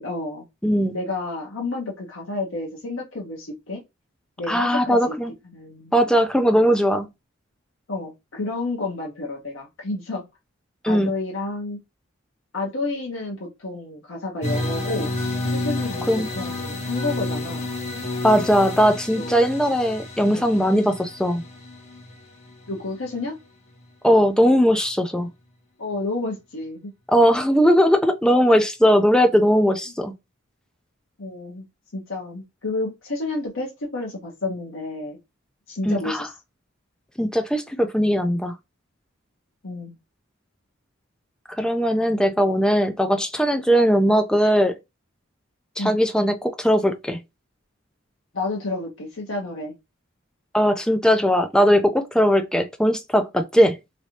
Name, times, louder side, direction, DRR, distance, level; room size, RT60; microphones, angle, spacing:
voice 1, 0.0-0.4 0.9-3.8 4.4-5.1 5.4-5.9 7.9-10.2 10.8-11.8 12.5-15.1 15.5-17.7 19.2-19.4 20.3-20.5 22.7-23.4 25.8-26.9 31.2-31.7 31.9-35.2 35.7-36.3 39.6-40.0 45.8-46.0 48.3-49.7, left 2 dB, 80° left, 1.0 m, -30 dB
voice 2, 0.6-1.0 4.5-5.3 5.9-7.1 10.8-11.1 16.1-16.3 18.2-21.4 24.0-25.3 27.1-30.1 35.9-36.3 37.2-38.5 41.6-44.7 45.8-47.2 50.5-53.8, equal, 5° left, 0.4 m, -19 dB
sound 1, 14.4-23.2, left 2 dB, 35° left, 0.8 m, -30 dB
3.2 x 2.6 x 2.8 m
head